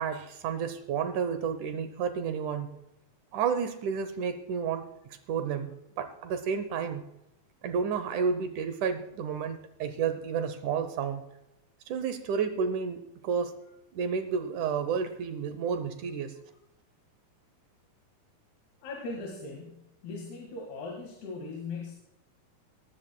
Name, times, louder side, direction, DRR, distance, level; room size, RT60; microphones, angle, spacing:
voice 1, 0.0-2.7 3.3-4.9 5.3-7.1 7.6-11.2 11.9-13.5 13.9-16.4, right 6 dB, 75° right, 9 dB, 1.9 m, -31 dB
voice 2, 18.8-22.0, left 3 dB, 90° left, 1 dB, 3.8 m, -39 dB
19.5 x 14.0 x 2.2 m, 0.86 s
omnidirectional pair, 4.4 m